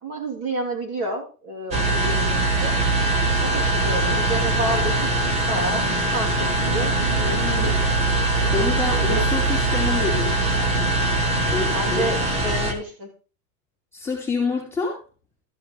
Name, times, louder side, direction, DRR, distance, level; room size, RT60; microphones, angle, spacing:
voice 1, 0.0-2.8 3.4-5.1 5.4-7.7 8.3-8.5 8.9-9.2 11.7-13.1, right 1 dB, 30° right, 1 dB, 2.9 m, -30 dB
sound 1, 1.7-12.7, right 2 dB, 15° right, 1.0 m, -22 dB
voice 2, 8.5-10.4 11.5-12.1 13.9-15.0, left 4 dB, 5° left, -4 dB, 2.5 m, -27 dB
13.5 x 5.0 x 5.0 m, 0.35 s
supercardioid pair, 165°, 46 cm